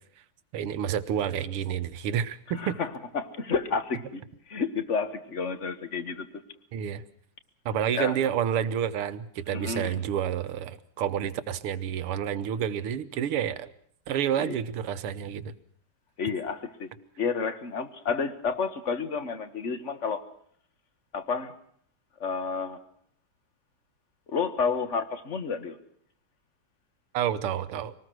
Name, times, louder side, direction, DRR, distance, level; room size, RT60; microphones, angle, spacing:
voice 1, 0.5-2.8 6.7-7.0 7.7-13.7 14.1-15.5 27.1-28.0, right 9 dB, 85° right, 13 dB, 2.0 m, -29 dB
voice 2, 2.5-6.4 7.9-8.2 9.5-10.0 14.4-14.6 16.2-16.9 17.2-20.2 21.1-21.5 22.2-22.8 24.3-25.8, left 5 dB, 35° left, 11 dB, 1.5 m, -30 dB
25.0 x 19.5 x 6.1 m, 0.64 s
omnidirectional pair, 2.4 m